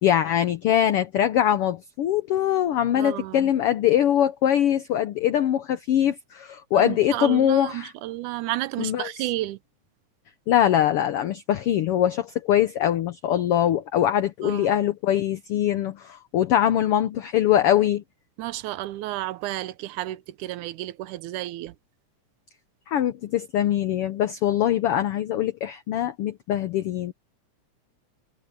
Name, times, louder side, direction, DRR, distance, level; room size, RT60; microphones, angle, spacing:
voice 1, 0.0-7.9 8.8-9.3 10.5-18.0 22.9-27.1, left 11 dB, 90° left, 1.2 m, -22 dB
voice 2, 3.0-3.5 6.7-9.6 14.4-14.7 18.4-21.7, right 16 dB, 80° right, 2.1 m, -32 dB
omnidirectional pair, 3.6 m